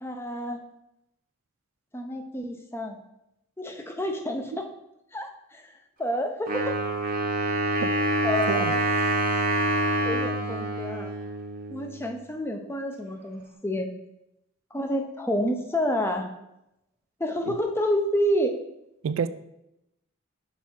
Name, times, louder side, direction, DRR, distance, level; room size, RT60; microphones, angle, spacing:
voice 1, 0.0-0.6 1.9-3.0 3.6-4.7 5.1-5.7 6.0-6.8 8.2-8.8 10.0-11.1 11.7-13.9 14.7-16.3 17.2-18.5, equal, 10° left, 0.5 m, -29 dB
Wind instrument woodwind instrument, 6.5-12.1, right 1 dB, 40° right, 0.8 m, -26 dB
voice 2, 7.8-7.9 8.5-8.8 17.5-17.6 19.0-19.3, right 6 dB, 75° right, 0.3 m, -28 dB
6.0 x 4.6 x 4.3 m
head